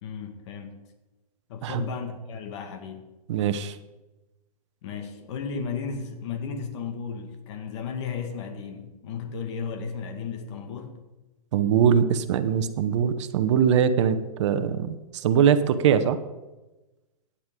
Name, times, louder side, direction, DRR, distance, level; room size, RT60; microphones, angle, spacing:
voice 1, 0.0-0.7 1.5-3.1 4.8-11.0, left 6 dB, 50° left, 6 dB, 1.9 m, -34 dB
voice 2, 3.3-3.8 11.5-16.2, right 8 dB, 50° right, 11 dB, 0.9 m, -22 dB
16.0 x 10.0 x 3.8 m, 1.1 s
hypercardioid pair, 140°, 20 cm